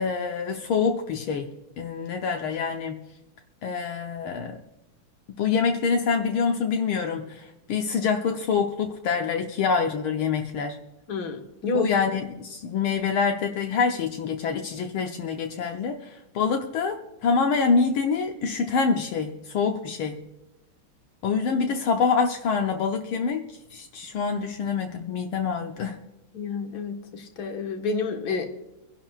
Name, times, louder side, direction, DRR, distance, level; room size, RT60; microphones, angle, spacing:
voice 1, 0.0-1.5 1.8-3.0 3.6-4.6 5.3-10.8 11.7-20.2 21.2-23.4 23.7-26.0, left 5 dB, 75° left, 3 dB, 1.7 m, -26 dB
voice 2, 11.1-11.9 26.3-28.5, left 4 dB, 50° left, 3 dB, 1.9 m, -29 dB
25.5 x 11.0 x 2.4 m, 0.92 s
omnidirectional pair, 2.4 m